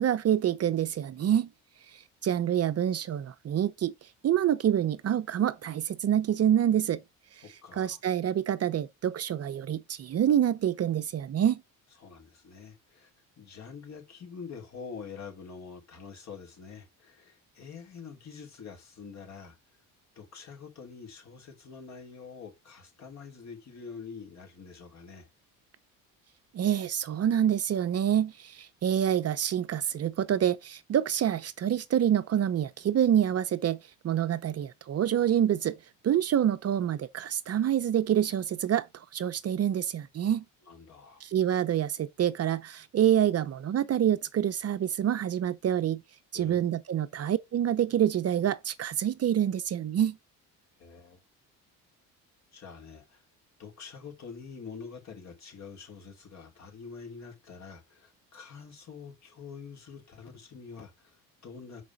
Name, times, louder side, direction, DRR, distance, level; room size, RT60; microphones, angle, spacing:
voice 1, 0.0-1.5 1.9-3.9 4.2-7.0 7.7-11.6 26.5-33.8 34.0-35.8 36.0-40.4 41.2-46.0 46.3-50.2, right 10 dB, 45° right, 0.7 m, -27 dB
voice 2, 7.4-8.0 12.0-13.1 13.4-19.6 20.1-25.3 40.6-41.2 46.3-46.6 50.8-51.2 52.5-53.2 53.6-61.8, left 5 dB, 50° left, 3.3 m, -46 dB
6.2 x 4.8 x 4.1 m
supercardioid pair, 90°, 36 cm